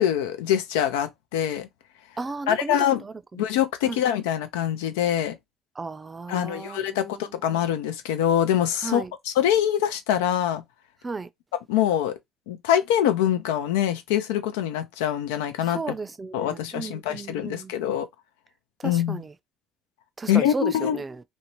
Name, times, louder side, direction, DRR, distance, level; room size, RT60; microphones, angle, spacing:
voice 1, 0.0-1.7 2.5-3.0 3.3-5.4 6.3-10.6 11.7-12.2 12.5-16.0 16.3-18.1 18.8-19.2 20.3-21.0, left 10 dB, 90° left, 0.4 m, -24 dB
voice 2, 2.2-2.8 3.0-3.1 3.8-4.0 5.8-7.2 8.8-9.1 11.0-11.3 15.7-17.7 18.8-19.3 20.2-21.2, right 3 dB, 25° right, 0.4 m, -34 dB
2.6 x 2.1 x 2.9 m
supercardioid pair, 75°, 0 cm